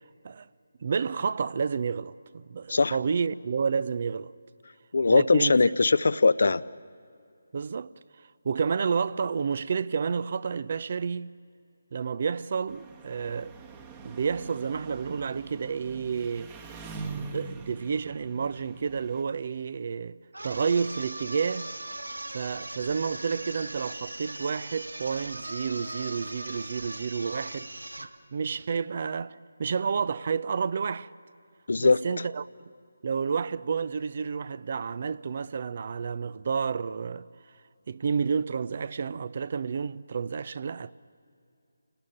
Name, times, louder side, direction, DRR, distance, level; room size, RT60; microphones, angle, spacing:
voice 1, 0.8-4.3 5.1-5.5 7.5-7.9 8.4-11.3 11.9-13.6 14.0-16.5 17.1-20.2 20.4-21.7 22.3-27.7 28.0-31.1 31.8-32.5 33.0-37.3 37.9-40.9, right 6 dB, 45° right, 0.6 m, -30 dB
voice 2, 4.9-6.6 31.7-32.0, left 3 dB, 60° left, 0.7 m, -21 dB
Engine, 12.7-19.2, right 4 dB, 20° right, 1.3 m, -43 dB
sound 1, 20.3-28.2, right 1 dB, 85° right, 1.4 m, -39 dB
28.5 x 19.0 x 8.8 m
figure-of-eight pair, 155°, 0 cm